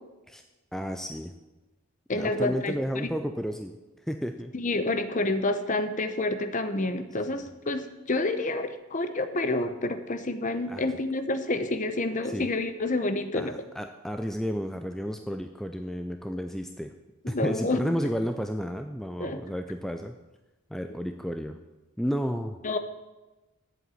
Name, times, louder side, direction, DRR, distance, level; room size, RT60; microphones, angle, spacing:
voice 1, 0.7-1.3 2.1-3.8 4.0-4.5 7.3-7.4 10.7-10.9 12.2-12.5 13.3-16.9 17.3-20.1 20.7-21.6 22.0-22.6, equal, ahead, 6 dB, 0.4 m, -32 dB
voice 2, 2.1-3.1 4.5-13.6 17.2-17.8 19.2-19.4 22.6-22.8, left 2 dB, 35° left, 9 dB, 0.7 m, -28 dB
7.9 x 7.7 x 8.3 m, 1.1 s
head